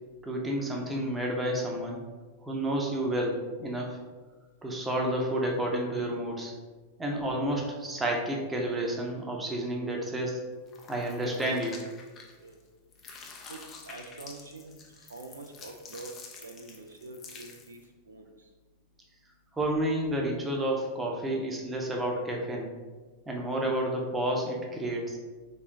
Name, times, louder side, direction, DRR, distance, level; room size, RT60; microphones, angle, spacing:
voice 1, 0.2-2.0 2.4-4.0 4.6-6.5 7.0-10.4 10.9-11.8 19.5-22.7 23.3-25.2, right 1 dB, 15° right, -1 dB, 0.8 m, -30 dB
sound 1, 10.7-12.6 12.9-17.9, left 4 dB, 30° left, 0.6 m, -48 dB
voice 2, 13.5-16.1 16.4-17.8 18.1-18.5, right 3 dB, 75° right, 3 dB, 0.4 m, -46 dB
3.5 x 3.1 x 3.7 m, 1.3 s
figure-of-eight pair, 90°, 0 cm